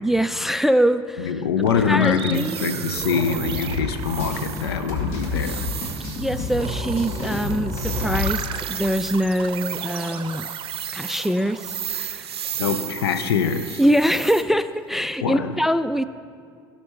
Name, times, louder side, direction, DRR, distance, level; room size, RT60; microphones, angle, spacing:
voice 1, 0.0-1.4 1.9-2.6 6.2-10.5 10.9-12.3 13.8-16.0, equal, ahead, 13 dB, 0.3 m, -23 dB
voice 2, 1.2-5.7 12.6-13.8 15.2-15.6, left 6 dB, 75° left, 10 dB, 0.6 m, -24 dB
sound 1, 1.6-14.3, right 7 dB, 40° right, 0.7 m, -36 dB
sound 2, 2.3-14.4, right 9 dB, 80° right, 0.5 m, -35 dB
sound 3, 3.4-8.3, left 4 dB, 55° left, 2.0 m, -29 dB
17.5 x 5.9 x 4.3 m, 2.2 s
figure-of-eight pair, 65°, 13 cm